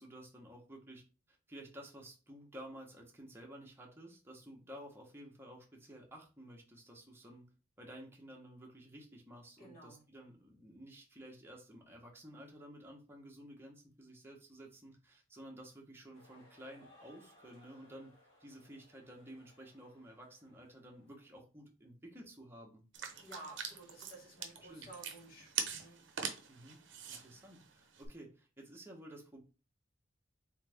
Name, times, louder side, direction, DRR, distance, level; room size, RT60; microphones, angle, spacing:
voice 1, 0.0-7.5 7.8-18.1 18.4-22.8 24.6-24.9 26.5-26.8 27.1-29.4, right 1 dB, 10° right, -1 dB, 1.0 m, -53 dB
voice 2, 9.6-10.0 23.2-26.0, right 2 dB, 50° left, 0 dB, 1.6 m, -53 dB
sound 1, 16.1-21.4, left 1 dB, 65° left, 1.6 m, -64 dB
sound 2, 22.9-28.1, right 7 dB, 65° right, 0.7 m, -43 dB
3.6 x 3.2 x 3.4 m, 0.33 s
head